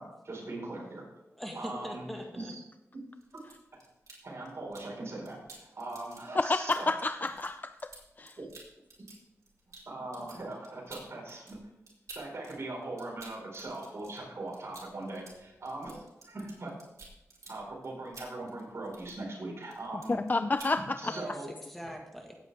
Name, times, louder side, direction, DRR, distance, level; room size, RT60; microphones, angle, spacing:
voice 1, 0.0-1.0 1.5-2.1 2.3-2.6 2.9-3.0 4.2-6.9 8.4-8.5 9.9-11.6 12.1-16.8 17.5-20.2 21.0-21.5, right 2 dB, 55° right, -3 dB, 4.7 m, -40 dB
voice 2, 1.2-2.5 21.0-22.4, equal, 5° left, 1 dB, 1.8 m, -42 dB
sound 1, 3.2-4.9 5.3-12.5 12.8-19.4 19.6-20.3 20.6-20.8, right 2 dB, 85° right, 3.5 m, -52 dB
voice 3, 6.4-7.9 8.2-8.3 20.3-21.1, left 3 dB, 35° left, 10 dB, 0.4 m, -30 dB
17.5 x 8.2 x 3.5 m, 0.91 s
wide cardioid pair, 75°, 5 cm